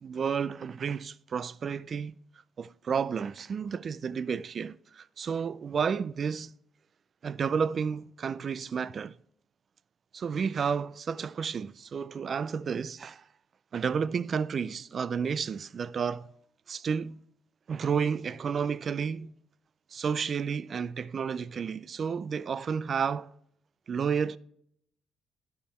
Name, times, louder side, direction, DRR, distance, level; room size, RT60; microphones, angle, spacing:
voice 1, 0.0-2.2 2.6-6.5 7.2-9.2 10.1-13.2 13.7-16.3 16.7-17.2 17.7-19.3 19.9-23.3 23.9-24.4, right 6 dB, 50° right, 0.3 m, -31 dB
10.5 x 5.7 x 4.3 m
cardioid pair, 90°, 0 cm